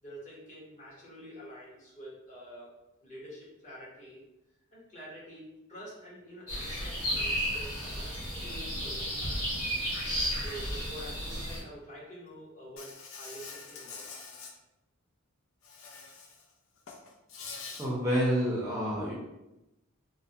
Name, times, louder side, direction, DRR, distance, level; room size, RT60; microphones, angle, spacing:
voice 1, 0.0-2.7 3.0-4.2 4.7-8.1 8.4-9.6 10.4-14.3, equal, 35° left, -6 dB, 0.9 m, -47 dB
sound 1, 6.5-11.6, equal, 80° left, 1.4 m, -33 dB
Insect, 12.8-14.5 15.6-16.4 16.8-17.9, left 4 dB, 60° left, 0.4 m, -45 dB
voice 2, 17.8-19.1, equal, 15° right, -6 dB, 0.5 m, -28 dB
3.2 x 2.1 x 2.6 m, 0.93 s
head